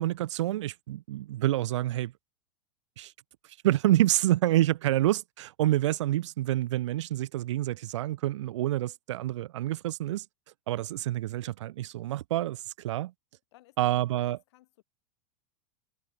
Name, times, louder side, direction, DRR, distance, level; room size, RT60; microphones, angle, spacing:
voice 1, 0.0-2.1 3.0-3.1 3.6-10.2 10.7-13.1 13.8-14.4, right 14 dB, 90° right, 0.4 m, -27 dB
voice 2, 13.5-14.0 14.3-14.8, left 18 dB, 70° left, 3.2 m, -59 dB
supercardioid pair, 125°, 15 cm